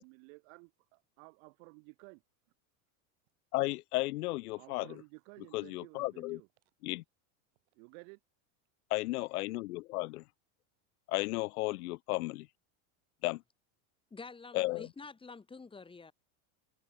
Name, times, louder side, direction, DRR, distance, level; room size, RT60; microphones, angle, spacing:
voice 1, 0.0-2.2 4.5-6.5 7.7-8.2, right 36 dB, 60° right, 7.2 m, -54 dB
voice 2, 3.5-4.9 5.5-6.4 6.8-7.0 8.9-10.2 11.1-12.5 13.2-13.4 14.5-14.9, left 20 dB, 85° left, 1.2 m, -34 dB
voice 3, 14.1-16.1, left 4 dB, 10° left, 4.8 m, -48 dB
supercardioid pair, 155°, 43 cm